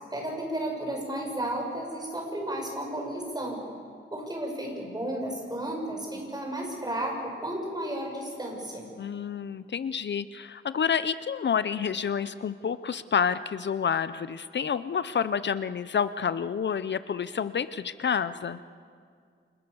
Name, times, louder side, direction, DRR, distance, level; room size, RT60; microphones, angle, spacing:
voice 1, 0.1-3.6 4.1-8.9, right 1 dB, 20° right, 0 dB, 7.4 m, -33 dB
voice 2, 9.0-18.6, left 7 dB, 60° left, 14 dB, 0.7 m, -29 dB
29.0 x 27.0 x 7.1 m, 2.2 s
wide cardioid pair, 115°, 21 cm